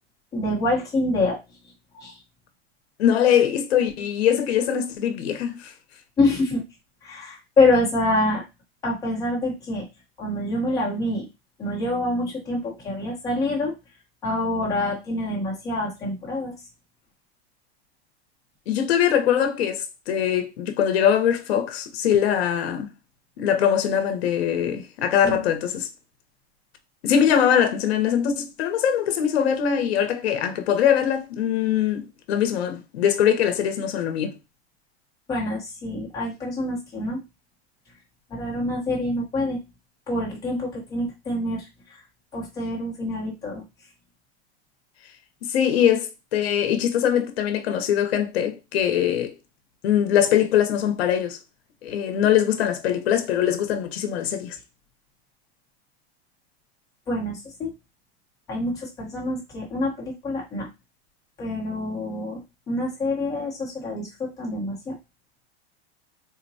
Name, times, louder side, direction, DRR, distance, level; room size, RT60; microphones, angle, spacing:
voice 1, 0.3-1.4 1.9-2.2 6.2-6.6 7.0-8.4 8.8-9.8 10.2-11.3 11.6-13.7 14.2-16.5 25.2-25.4 35.3-37.2 38.3-39.6 40.1-42.0 42.3-43.6 57.1-57.7 58.5-60.7 61.4-62.4 62.7-65.0, left 2 dB, 10° left, 0.8 m, -26 dB
voice 2, 3.0-5.7 18.7-22.9 23.4-25.9 27.0-34.3 45.5-49.3 49.8-51.4 51.8-54.6, left 9 dB, 70° left, 0.8 m, -22 dB
3.9 x 2.1 x 2.6 m
supercardioid pair, 170°, 33 cm